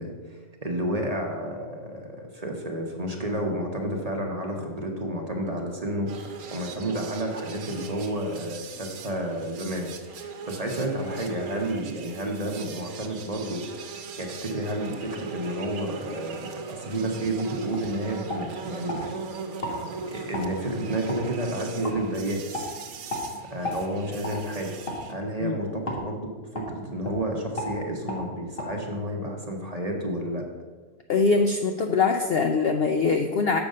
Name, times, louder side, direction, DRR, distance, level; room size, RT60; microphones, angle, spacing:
voice 1, 0.0-13.6 13.9-16.4 16.7-19.2 19.6-19.7 20.1-22.7 23.5-24.7 25.1-30.4, right 1 dB, 30° right, 1 dB, 0.9 m, -31 dB
sound 1, 6.1-25.1, right 5 dB, 85° right, 1.2 m, -40 dB
sound 2, 17.1-17.3 17.7-17.9 18.3-19.0 19.6-19.8 20.3-20.5 21.1-21.2 21.8-22.0 22.5-22.7 23.1-23.3 23.6-23.8 24.2-24.4 24.8-25.0 25.9-26.0 26.5-26.7 27.0-27.2 27.6-27.7 28.1-28.2 28.6-28.7, left 1 dB, 40° left, 1.8 m, -32 dB
voice 2, 31.1-33.6, left 4 dB, 65° left, 5 dB, 0.6 m, -23 dB
7.1 x 5.3 x 6.4 m, 1.4 s
omnidirectional pair, 1.5 m